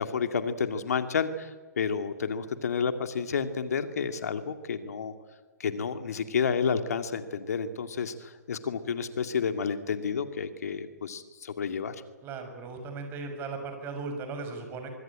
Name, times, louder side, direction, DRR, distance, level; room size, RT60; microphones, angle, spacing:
voice 1, 0.0-5.1 5.6-12.0, left 6 dB, 65° left, 8 dB, 2.2 m, -30 dB
voice 2, 12.2-14.9, right 4 dB, 25° right, 6 dB, 6.4 m, -37 dB
24.5 x 24.0 x 8.8 m, 1.3 s
hypercardioid pair, 130°, 9 cm